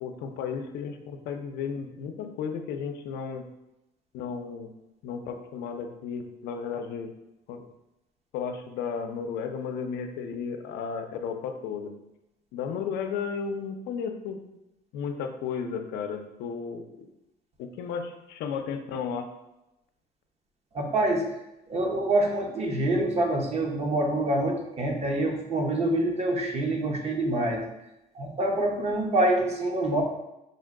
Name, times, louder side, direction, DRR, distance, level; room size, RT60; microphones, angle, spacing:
voice 1, 0.0-3.4 4.1-4.7 5.0-7.1 7.5-7.7 8.3-11.9 12.5-14.4 14.9-17.1 17.6-19.3, left 6 dB, 80° left, 5 dB, 0.5 m, -34 dB
voice 2, 20.7-21.3 21.7-27.6 28.1-30.0, right 1 dB, 40° right, 1 dB, 0.8 m, -26 dB
5.3 x 2.2 x 3.6 m, 0.92 s
cardioid pair, 110°, 17 cm